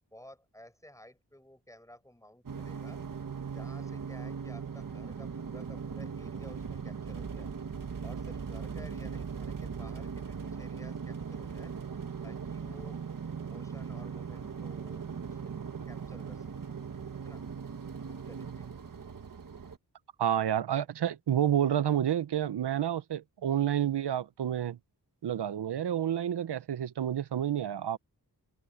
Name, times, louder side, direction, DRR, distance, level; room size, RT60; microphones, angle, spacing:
voice 1, 0.1-3.0 3.4-7.5 8.0-11.7 12.2-13.2 13.4-15.5 15.9-16.5 17.2-17.4 18.1-18.8 20.6-20.9, left 1 dB, 10° left, 7.7 m, -54 dB
sound 1, 2.5-19.8, right 6 dB, 55° right, 1.8 m, -39 dB
voice 2, 20.2-24.8 25.2-28.0, right 10 dB, 85° right, 0.9 m, -29 dB
wide cardioid pair, 100°, 39 cm